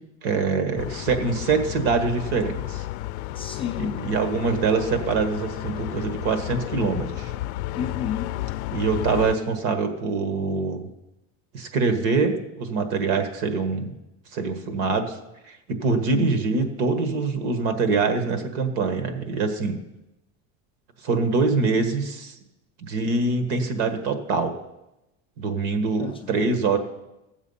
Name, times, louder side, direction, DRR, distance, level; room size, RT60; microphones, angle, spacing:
voice 1, 0.2-2.8 3.8-7.3 8.7-10.9 11.5-13.9 14.3-15.2 15.5-19.8 21.0-22.3 22.8-24.6 25.4-26.8, right 4 dB, 60° right, 8 dB, 1.6 m, -24 dB
sound 1, 0.8-9.4, left 15 dB, 80° left, 0.5 m, -32 dB
voice 2, 3.3-4.1 7.8-8.4 15.9-16.3 26.0-26.8, left 8 dB, 20° left, 2 dB, 0.3 m, -32 dB
14.5 x 7.3 x 5.6 m, 0.94 s
cardioid pair, 170°, 34 cm